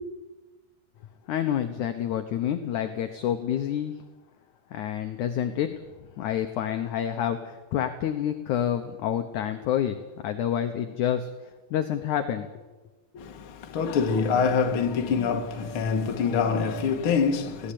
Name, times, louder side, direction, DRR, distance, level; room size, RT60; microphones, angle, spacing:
voice 1, 1.3-3.9 4.7-5.8 6.2-10.0 10.2-11.3 11.7-12.5, left 10 dB, 70° left, 1.9 m, -28 dB
voice 2, 13.1-17.7, left 5 dB, 50° left, 1.8 m, -25 dB
19.5 x 17.0 x 8.6 m
omnidirectional pair, 4.7 m